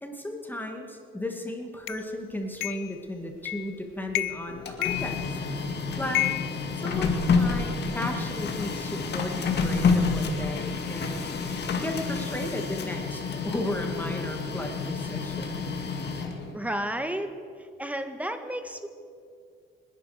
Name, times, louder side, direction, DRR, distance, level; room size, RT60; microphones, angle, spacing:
voice 1, 0.0-5.2 6.0-6.3 6.8-11.3 11.8-15.7, left 1 dB, 10° left, 3 dB, 2.0 m, -35 dB
sound 1, 1.9-2.0 2.6-2.9 3.5-3.8 4.1-4.5 4.8-5.6 6.1-7.4, left 16 dB, 85° left, 0.5 m, -31 dB
Printer, 4.5-16.5, left 4 dB, 60° left, 2.2 m, -29 dB
voice 2, 16.5-17.3 17.6-18.9, right 1 dB, 5° right, 7 dB, 1.5 m, -32 dB
24.5 x 10.5 x 5.0 m, 2.3 s
cardioid pair, 90°, 20 cm